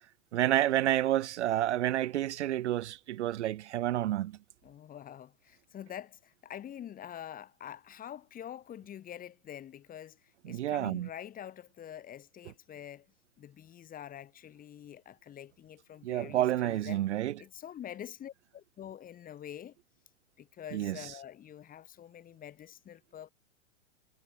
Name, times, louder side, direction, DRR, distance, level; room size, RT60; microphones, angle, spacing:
voice 1, 0.3-4.4 10.5-11.1 16.0-17.3 20.7-21.0, right 13 dB, 65° right, 0.6 m, -29 dB
voice 2, 4.6-13.1 13.4-17.0 17.4-19.8 20.4-23.3, left 10 dB, 25° left, 1.9 m, -46 dB
hypercardioid pair, 105°, 37 cm